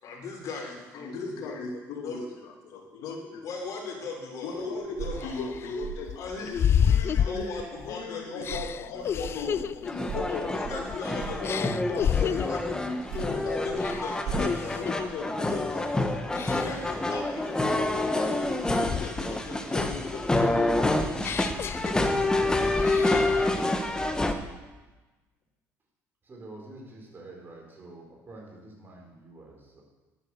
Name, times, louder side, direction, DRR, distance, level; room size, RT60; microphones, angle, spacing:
voice 1, 0.0-1.2 2.0-2.2 3.4-5.7 6.2-8.6 8.9-9.5 10.5-12.8 13.2-14.8 16.5-17.4 18.6-19.9 22.1-24.3, left 4 dB, 55° left, 0 dB, 4.4 m, -40 dB
voice 2, 0.9-3.4 4.4-6.6 7.2-10.5 11.3-13.9 14.3-16.1 17.5-18.7 19.7-21.1 21.8-22.4, left 3 dB, 75° left, 1 dB, 2.3 m, -37 dB
sound 1, 4.6-4.7 5.2-7.9 8.4-11.1 11.4-12.7 13.1-13.4 13.8-15.1 15.5-15.8 16.3-16.9 17.4-19.4 19.7-22.4 22.8-23.4, left 9 dB, 40° left, 0.3 m, -31 dB
sound 2, 4.8-8.2 8.4-12.0 12.8-15.5, right 6 dB, 70° right, 5.0 m, -41 dB
sound 3, 9.9-24.3, left 2 dB, 10° left, 1.2 m, -28 dB
voice 3, 26.2-29.8, right 2 dB, 30° right, 0 dB, 4.7 m, -47 dB
11.0 x 9.7 x 6.7 m, 1.2 s
cardioid pair, 100°, 6 cm